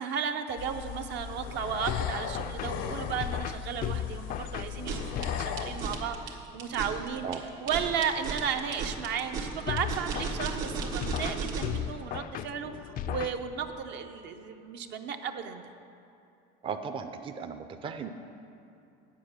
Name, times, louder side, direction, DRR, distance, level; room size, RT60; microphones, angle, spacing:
voice 1, 0.0-7.3 7.6-15.6, right 7 dB, 60° right, 6 dB, 0.7 m, -34 dB
sound 1, 0.6-6.0, left 8 dB, 75° left, 0.7 m, -38 dB
sound 2, 1.9-6.1 9.7-13.9, left 10 dB, 45° left, 0.4 m, -36 dB
sound 3, 4.7-11.8, right 5 dB, 85° right, 1.5 m, -35 dB
voice 2, 16.6-18.1, right 6 dB, 25° right, 7 dB, 0.5 m, -36 dB
8.8 x 7.7 x 6.5 m, 2.7 s
supercardioid pair, 110°, 20 cm